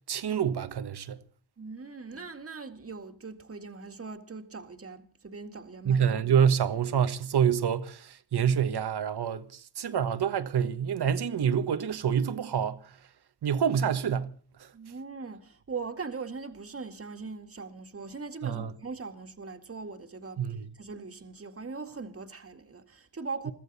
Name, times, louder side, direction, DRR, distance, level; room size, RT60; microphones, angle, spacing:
voice 1, 0.1-1.2 5.8-12.8 13.4-14.3 18.4-18.7 20.4-20.7, right 8 dB, 65° right, 1.4 m, -27 dB
voice 2, 1.6-6.0 14.7-20.4 20.7-23.5, right 4 dB, 30° right, 2.0 m, -40 dB
22.5 x 14.5 x 4.2 m
cardioid pair, 75°, 43 cm